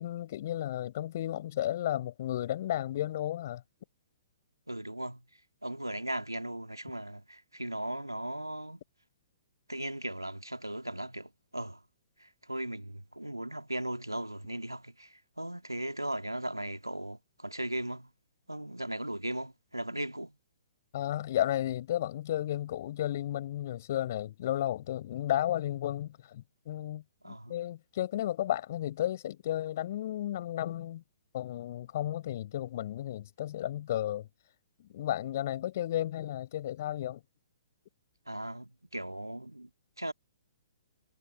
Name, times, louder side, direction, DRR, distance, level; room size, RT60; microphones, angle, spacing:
voice 1, 0.0-3.6 20.9-31.0 31.3-34.3 34.8-37.2, left 12 dB, 45° left, 6.4 m, -33 dB
voice 2, 4.7-5.2 5.6-8.8 9.7-11.8 12.2-18.1 18.5-20.3 27.2-27.6 38.3-39.7 40.0-40.1, right 1 dB, 85° right, 2.2 m, -37 dB
figure-of-eight pair, 120°, 2 cm